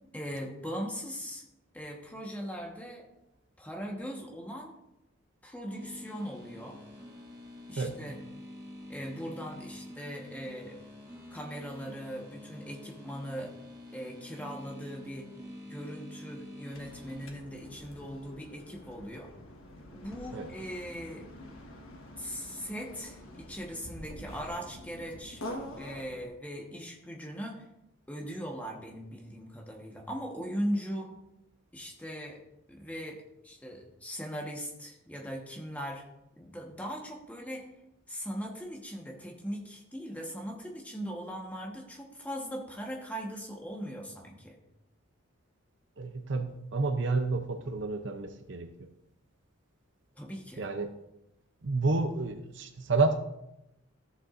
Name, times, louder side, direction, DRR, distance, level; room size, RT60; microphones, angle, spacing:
voice 1, 0.1-1.4 1.7-3.1 3.6-4.7 5.4-6.8 7.7-8.2 8.9-10.8 11.3-13.5 13.9-15.3 15.6-19.3 19.9-21.2 22.2-25.4 25.8-27.7 28.1-31.1 31.7-32.4 32.7-36.0 36.4-37.7 38.1-44.6 50.2-50.7, equal, 5° left, 0 dB, 1.2 m, -39 dB
sound 1, 5.7-17.3, left 1 dB, 20° right, 1.3 m, -47 dB
sound 2, 16.7-26.3, left 1 dB, 90° left, 1.5 m, -46 dB
voice 2, 46.0-48.7 50.6-50.9 51.6-53.2, right 3 dB, 55° right, 8 dB, 0.6 m, -30 dB
14.0 x 7.1 x 2.6 m, 0.87 s
head